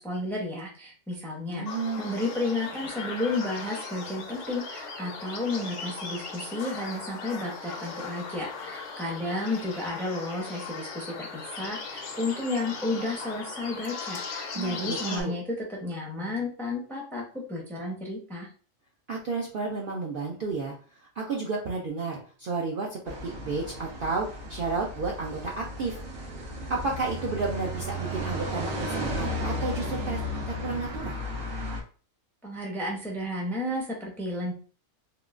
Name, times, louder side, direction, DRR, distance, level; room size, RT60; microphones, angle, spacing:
voice 1, 0.0-1.6 2.0-18.5 32.4-34.5, left 2 dB, ahead, -1 dB, 0.5 m, -32 dB
voice 2, 1.5-2.2 14.5-15.3 19.1-26.3 26.7-31.2, right 4 dB, 60° right, -2 dB, 0.6 m, -32 dB
sound 1, 1.7-15.2, left 4 dB, 65° left, 1.0 m, -38 dB
sound 2, 23.1-31.8, equal, 75° right, 1.3 m, -34 dB
3.6 x 2.3 x 2.4 m, 0.40 s
omnidirectional pair, 1.4 m